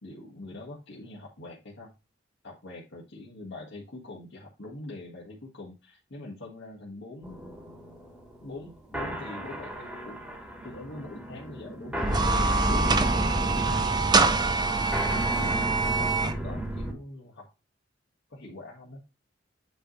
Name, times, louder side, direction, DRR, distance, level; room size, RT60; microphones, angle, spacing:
voice 1, 0.0-1.9 2.4-8.0 8.4-10.3 10.6-14.4 14.7-17.5 18.3-19.0, left 2 dB, 65° left, -5 dB, 1.7 m, -43 dB
sound 1, 7.2-16.9, right 1 dB, 5° right, 1.6 m, -31 dB
sound 2, 12.0-16.3, right 4 dB, 20° right, 0.6 m, -25 dB
9.2 x 3.2 x 4.0 m, 0.26 s
head